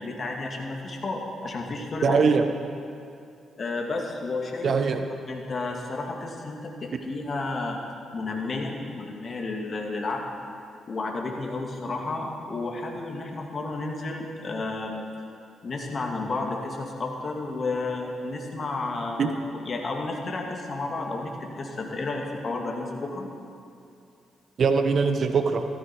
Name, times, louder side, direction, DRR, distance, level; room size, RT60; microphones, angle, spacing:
voice 1, 0.0-2.2 3.6-4.7 5.3-7.8 8.1-10.2 10.9-15.0 15.6-23.3, left 3 dB, 50° left, 1 dB, 2.5 m, -32 dB
voice 2, 2.0-2.4 4.6-5.1 19.2-19.3 24.6-25.7, right 5 dB, 55° right, 7 dB, 1.0 m, -22 dB
15.5 x 13.5 x 4.7 m, 2.5 s
hypercardioid pair, 45°, 0 cm